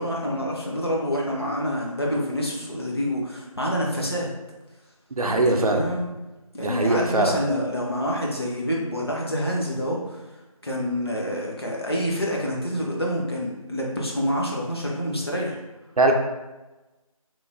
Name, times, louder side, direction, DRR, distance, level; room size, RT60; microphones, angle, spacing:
voice 1, 0.0-4.3 5.3-6.1 6.5-10.2 10.6-15.6, equal, 45° left, -2 dB, 0.5 m, -27 dB
voice 2, 5.2-5.9 6.6-7.4 16.0-16.1, right 2 dB, 80° right, 3 dB, 0.4 m, -21 dB
3.0 x 2.0 x 2.5 m, 1.1 s
figure-of-eight pair, 170°, 19 cm